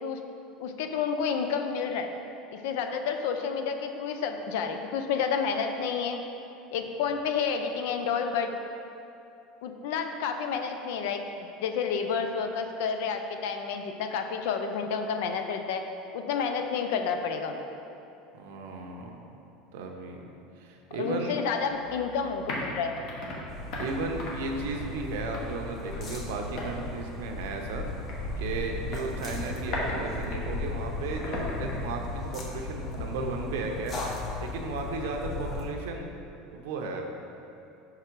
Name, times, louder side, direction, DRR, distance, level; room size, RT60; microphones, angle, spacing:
voice 1, 0.6-2.1 2.5-6.2 6.7-8.5 9.6-11.2 11.6-15.8 16.1-17.6 20.9-22.9, left 6 dB, 75° left, 6 dB, 0.5 m, -30 dB
voice 2, 18.3-19.2 19.7-20.3 20.6-21.4 23.8-27.9 28.4-34.0 34.4-36.1 36.5-37.2, right 3 dB, 85° right, 2 dB, 0.8 m, -35 dB
sound 1, 21.7-33.1, left 1 dB, 55° left, 1.2 m, -39 dB
sound 2, 23.5-35.6, left 3 dB, 35° left, 0.9 m, -36 dB
5.9 x 4.8 x 4.5 m, 2.7 s
supercardioid pair, 150°, 0 cm